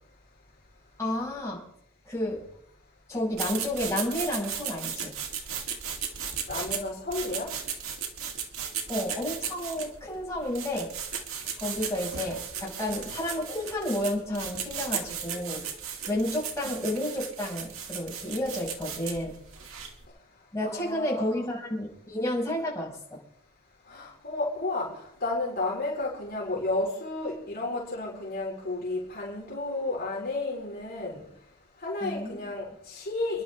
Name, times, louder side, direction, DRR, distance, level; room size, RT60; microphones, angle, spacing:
voice 1, 1.0-1.6 2.0-2.4 3.1-5.1 8.9-10.9 11.6-15.6 16.1-19.3 20.5-23.2 31.0-31.1 32.0-32.3, left 1 dB, 15° left, -5 dB, 6.3 m, -31 dB
sound 1, 3.3-20.0, right 7 dB, 85° right, 2.3 m, -36 dB
voice 2, 6.2-7.6 20.7-21.5 23.8-31.3 31.8-33.4, left 2 dB, 50° left, -4 dB, 4.5 m, -32 dB
28.5 x 11.0 x 3.6 m, 0.71 s
head